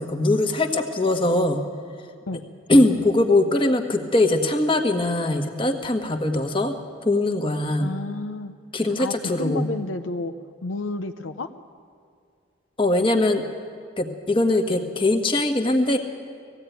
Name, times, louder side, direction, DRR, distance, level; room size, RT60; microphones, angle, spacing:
voice 1, 0.0-1.6 2.7-6.7 7.0-7.9 8.7-9.7 12.8-13.4 14.0-16.0, left 2 dB, 25° left, 5 dB, 1.5 m, -21 dB
voice 2, 7.8-8.5 9.0-10.3 10.6-11.5, left 2 dB, 85° left, 8 dB, 0.8 m, -31 dB
19.0 x 15.5 x 9.3 m, 2.2 s
head